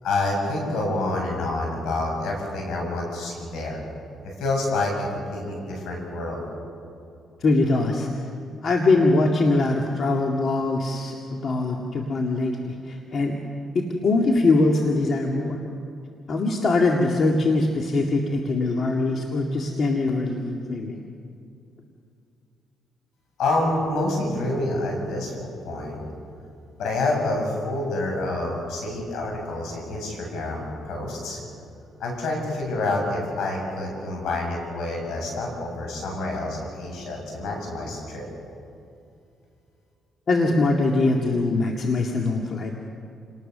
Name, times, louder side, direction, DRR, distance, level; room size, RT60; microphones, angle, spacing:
voice 1, 0.0-3.8 4.2-6.4 23.4-25.3 25.6-26.0 26.8-31.4 32.0-38.2, left 2 dB, 80° left, 0 dB, 7.7 m, -27 dB
voice 2, 7.4-8.1 8.6-13.4 13.7-15.6 16.3-21.0 40.3-42.7, left 2 dB, 50° left, 1 dB, 2.2 m, -22 dB
29.0 x 19.5 x 6.8 m, 2.6 s
cardioid pair, 90°, 0 cm